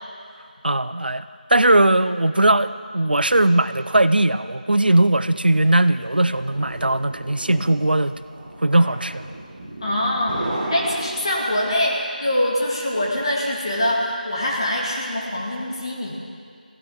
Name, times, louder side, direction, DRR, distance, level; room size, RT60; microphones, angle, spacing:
voice 1, 0.6-8.2 8.6-9.2, right 1 dB, 85° right, 13 dB, 0.7 m, -19 dB
sound 1, 5.8-11.7, right 1 dB, 15° right, 4.1 m, -34 dB
voice 2, 9.8-10.5 10.7-16.2, left 1 dB, 35° left, -3 dB, 2.1 m, -24 dB
22.5 x 15.5 x 3.6 m, 2.3 s
figure-of-eight pair, 175°, 5 cm